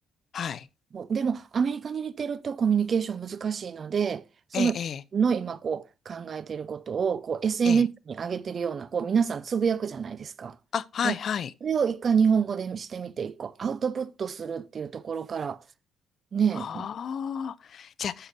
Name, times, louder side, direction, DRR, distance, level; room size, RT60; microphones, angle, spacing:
voice 1, 0.3-0.7 4.5-5.0 7.6-7.8 10.7-11.5 16.5-18.3, left 8 dB, 55° left, 0.5 m, -31 dB
voice 2, 0.9-4.2 4.5-4.8 5.1-10.6 11.0-11.2 11.6-15.6 16.3-16.9, right 6 dB, 45° right, 0.5 m, -27 dB
11.0 x 6.8 x 2.6 m
cardioid pair, 90°, 0 cm